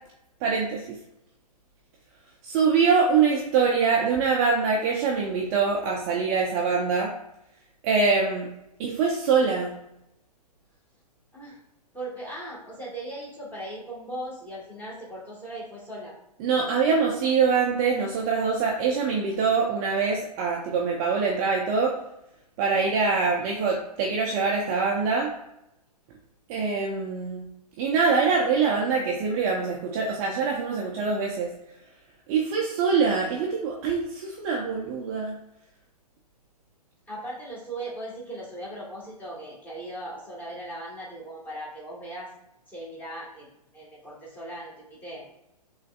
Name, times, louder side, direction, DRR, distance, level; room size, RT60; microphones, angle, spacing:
voice 1, 0.4-1.0 2.4-7.1 7.8-8.5 8.8-9.7 16.4-22.0 22.6-25.3 26.5-27.5 27.8-31.5 32.3-35.4, right 5 dB, 25° right, -2 dB, 0.5 m, -24 dB
voice 2, 11.9-16.2 37.1-42.3 42.7-43.5 43.7-45.3, right 1 dB, 10° left, -6 dB, 1.4 m, -38 dB
5.7 x 3.2 x 2.4 m, 0.85 s
figure-of-eight pair, 120°, 21 cm